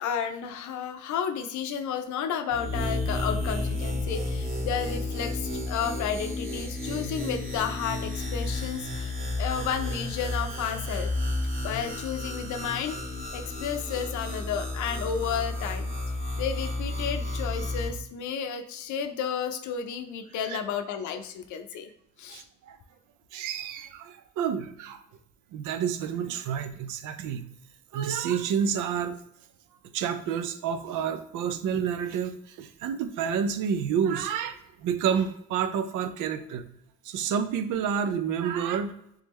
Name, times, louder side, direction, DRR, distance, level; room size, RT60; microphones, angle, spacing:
voice 1, 0.0-9.1 9.4-11.1 11.6-13.0 13.3-15.9 16.4-21.9 22.2-22.4, left 7 dB, 75° left, 7 dB, 0.5 m, -32 dB
sound 1, 2.5-17.9, left 2 dB, 40° right, 1.2 m, -32 dB
voice 2, 22.3-22.8 23.3-25.0 25.5-27.5 27.9-29.2 29.9-36.7 37.0-38.9, right 7 dB, 85° right, 9 dB, 0.5 m, -29 dB
3.5 x 3.3 x 3.0 m, 0.73 s
cardioid pair, 90°, 30 cm